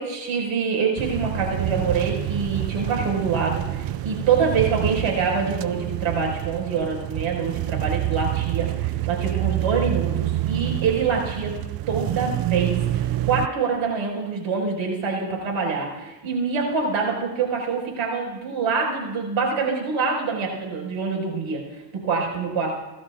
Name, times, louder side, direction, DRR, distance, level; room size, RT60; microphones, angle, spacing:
voice 1, 0.0-11.6 11.9-21.6 22.0-22.8, right 5 dB, 70° right, -1 dB, 5.4 m, -25 dB
sound 1, 1.0-13.5, right 15 dB, 50° right, 0.5 m, -27 dB
30.0 x 12.5 x 2.5 m, 1.0 s
supercardioid pair, 85°, 50 cm